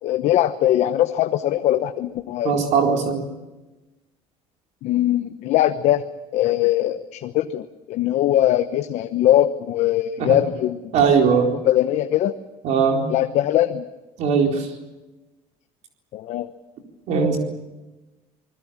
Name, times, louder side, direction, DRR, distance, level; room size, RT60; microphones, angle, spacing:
voice 1, 0.0-2.6 4.8-6.0 6.3-10.9 11.6-12.3 13.1-13.9 16.1-16.5, left 13 dB, 60° left, 8 dB, 1.0 m, -21 dB
voice 2, 2.4-3.3 10.2-10.4 10.9-11.5 12.6-13.0 14.2-14.7 17.1-17.4, right 6 dB, 65° right, 2 dB, 4.2 m, -19 dB
28.0 x 21.0 x 7.4 m, 1.1 s
cardioid pair, 140°, 13 cm